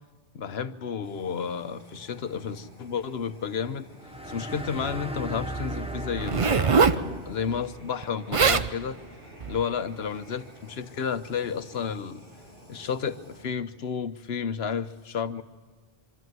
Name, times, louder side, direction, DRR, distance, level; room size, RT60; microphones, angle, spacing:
voice 1, 0.3-3.9 4.3-9.0 9.5-12.2 12.7-15.4, left 6 dB, 75° left, 12 dB, 1.1 m, -32 dB
Fire, 1.0-13.4, equal, 60° right, 8.4 m, -51 dB
sound 1, 4.0-7.8, right 1 dB, 5° right, 0.9 m, -36 dB
Zipper (clothing), 6.2-7.0 8.0-8.1 8.3-8.7 9.4-9.6, right 5 dB, 35° right, 0.6 m, -22 dB
24.0 x 13.5 x 9.4 m, 1.5 s
omnidirectional pair, 1.0 m